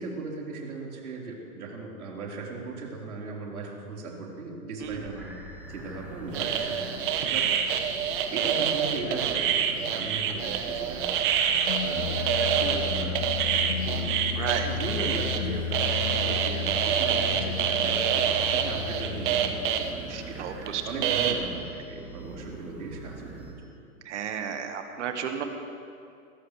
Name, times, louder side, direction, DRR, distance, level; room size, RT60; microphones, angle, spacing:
voice 1, 0.0-5.3 5.7-7.5 8.3-11.1 11.8-12.3 12.6-13.2 13.5-20.4 20.8-23.8, right 3 dB, 75° right, -3 dB, 4.4 m, -37 dB
sound 1, 4.8-23.5, right 1 dB, 5° right, 2.3 m, -44 dB
sound 2, 6.3-15.4 15.7-19.9 20.7-20.8 21.0-21.3, right 8 dB, 35° right, 1.1 m, -27 dB
sound 3, 11.5-20.3, left 6 dB, 45° left, 0.8 m, -34 dB
voice 2, 14.4-14.7 20.1-20.8 24.0-25.4, right 8 dB, 50° right, 5 dB, 1.7 m, -33 dB
22.0 x 16.5 x 3.3 m, 2.4 s
hypercardioid pair, 150°, 44 cm